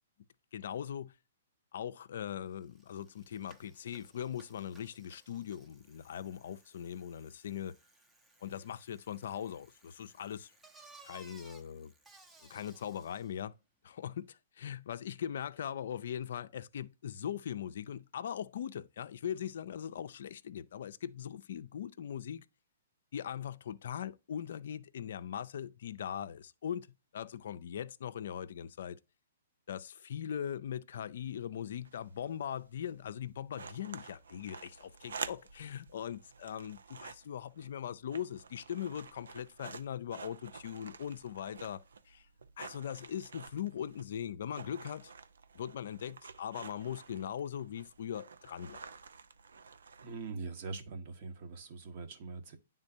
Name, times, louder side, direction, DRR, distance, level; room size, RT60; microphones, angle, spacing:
voice 1, 0.5-1.1 1.7-7.7 8.4-10.5 11.0-11.9 12.5-13.6 13.8-22.4 23.1-26.9 27.1-29.0 29.7-42.3 42.6-45.1 45.5-48.9, left 9 dB, 65° left, 0.4 m, -40 dB
Bicycle, 2.3-2.4 2.6-13.4, right 1 dB, 10° right, 0.6 m, -61 dB
sound 1, 31.6-50.5, right 5 dB, 80° right, 0.5 m, -50 dB
voice 2, 50.0-52.6, right 4 dB, 50° right, 1.1 m, -42 dB
9.7 x 3.7 x 2.7 m
hypercardioid pair, 130°, 0 cm